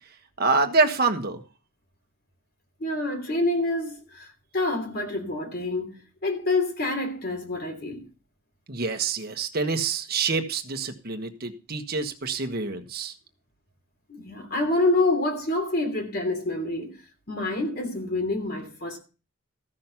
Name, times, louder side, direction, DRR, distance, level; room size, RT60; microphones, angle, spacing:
voice 1, 0.4-1.4 8.7-13.1, right 4 dB, 50° right, 1.4 m, -26 dB
voice 2, 2.8-4.3 4.5-8.0 14.1-17.0 17.3-19.0, left 2 dB, 50° left, 3.1 m, -27 dB
14.5 x 6.3 x 5.9 m
head